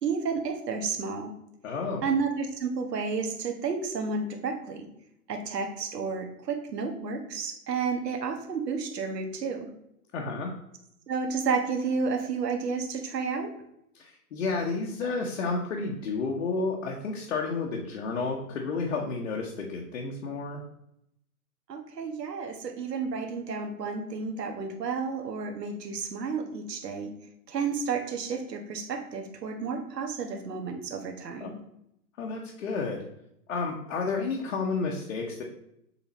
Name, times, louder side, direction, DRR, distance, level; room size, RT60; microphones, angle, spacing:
voice 1, 0.0-1.3 2.0-4.9 5.3-9.7 11.1-13.5 21.7-27.1 27.5-31.5, right 5 dB, 85° right, 4 dB, 1.4 m, -31 dB
voice 2, 1.6-2.1 10.1-10.5 13.9-20.6 31.4-31.5 32.2-33.0 33.5-35.4, left 4 dB, 50° left, -1 dB, 1.1 m, -31 dB
7.0 x 3.6 x 4.1 m, 0.78 s
hypercardioid pair, 165°, 47 cm